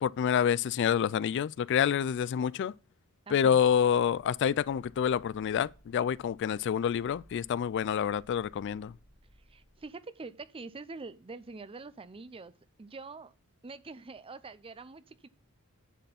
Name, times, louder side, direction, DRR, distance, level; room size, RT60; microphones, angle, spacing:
voice 1, 0.0-2.7 3.3-8.9, left 8 dB, 55° left, 0.3 m, -27 dB
voice 2, 3.3-3.6 9.5-12.5 12.8-13.3 13.6-15.3, right 3 dB, 25° right, 0.5 m, -45 dB
sound 1, 3.9-9.8, right 1 dB, 75° right, 4.5 m, -60 dB
10.0 x 4.3 x 5.8 m
head